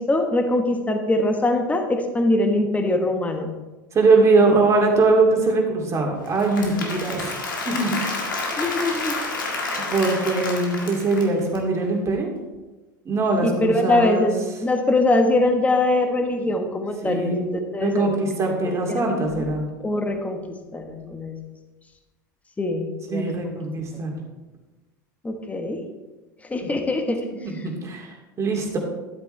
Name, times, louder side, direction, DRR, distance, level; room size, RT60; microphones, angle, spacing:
voice 1, 0.0-3.5 8.6-9.2 13.4-14.3 14.6-17.5 17.7-18.2 18.9-19.5 19.8-20.4 20.7-21.4 22.6-23.5 25.2-25.8 26.4-27.2, left 2 dB, 15° left, 5 dB, 1.3 m, -22 dB
voice 2, 3.9-7.3 7.7-8.0 9.3-9.6 9.9-12.3 13.0-14.3 17.0-17.3 17.8-19.7 23.1-24.2 27.4-28.8, right 3 dB, 30° right, 0 dB, 2.7 m, -21 dB
Applause / Crowd, 6.2-11.6, left 3 dB, 85° left, 2.0 m, -29 dB
12.5 x 8.1 x 3.3 m, 1.2 s
hypercardioid pair, 90°, 10 cm